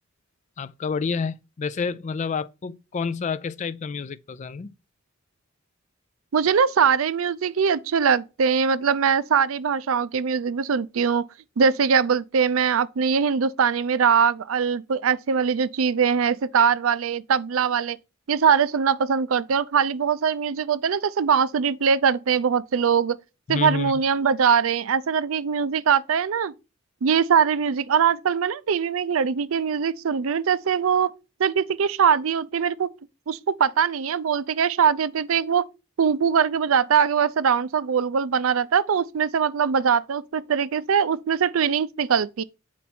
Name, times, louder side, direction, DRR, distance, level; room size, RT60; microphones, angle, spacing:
voice 1, 0.6-4.7 23.5-24.0, left 5 dB, 35° left, 0.3 m, -29 dB
voice 2, 6.3-11.3 11.6-18.0 18.3-23.2 23.5-26.5 27.0-31.1 31.4-32.9 33.3-35.6 36.0-42.4, right 6 dB, 85° right, 0.5 m, -22 dB
8.4 x 4.5 x 4.2 m
head